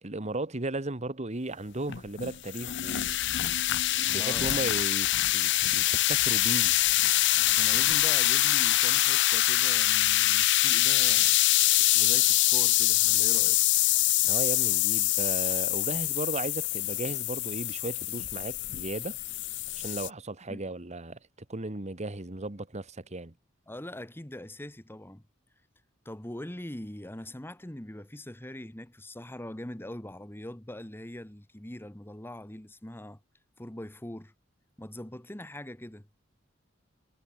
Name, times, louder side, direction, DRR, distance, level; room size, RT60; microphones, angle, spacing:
voice 1, 0.0-3.2 4.1-6.8 14.2-19.2 19.7-21.2 21.5-23.3, right 2 dB, 35° right, 1.6 m, -35 dB
sound 1, 1.9-20.1, left 16 dB, 65° left, 0.6 m, -25 dB
voice 2, 4.1-4.7 7.6-11.4 11.9-13.6 20.5-20.6 23.7-25.2 26.0-33.2 33.6-34.3 34.8-36.1, left 1 dB, 10° left, 1.3 m, -42 dB
head